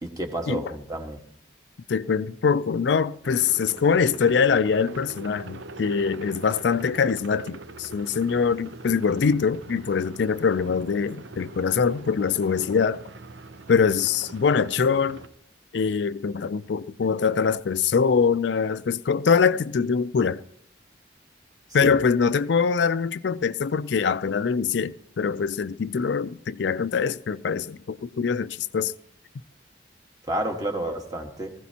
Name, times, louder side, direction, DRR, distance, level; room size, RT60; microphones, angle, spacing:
voice 1, 0.0-1.2 21.8-22.0 30.3-31.5, right 1 dB, 20° right, 1.6 m, -30 dB
voice 2, 1.9-13.0 13.7-15.2 15.7-20.4 21.7-28.9, left 6 dB, 70° left, 0.4 m, -23 dB
sound 1, 3.2-15.3, right 3 dB, 90° right, 0.7 m, -42 dB
19.5 x 15.5 x 2.9 m
head